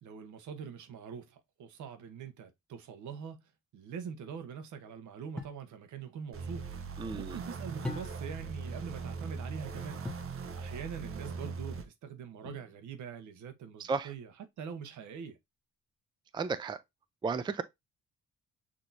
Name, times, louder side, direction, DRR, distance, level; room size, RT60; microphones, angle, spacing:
voice 1, 0.0-3.4 3.7-10.1 10.3-15.4, right 7 dB, 75° right, 1.0 m, -44 dB
sound 1, 5.4-5.7 7.8-8.5 10.0-10.4 12.4-13.0, left 1 dB, 5° left, 1.0 m, -40 dB
sound 2, 6.3-11.8, right 4 dB, 45° right, 0.8 m, -40 dB
voice 2, 7.0-7.4 13.8-14.1 16.3-16.8 17.2-17.6, right 4 dB, 15° right, 0.4 m, -33 dB
6.2 x 2.8 x 2.6 m
cardioid pair, 90°, 30 cm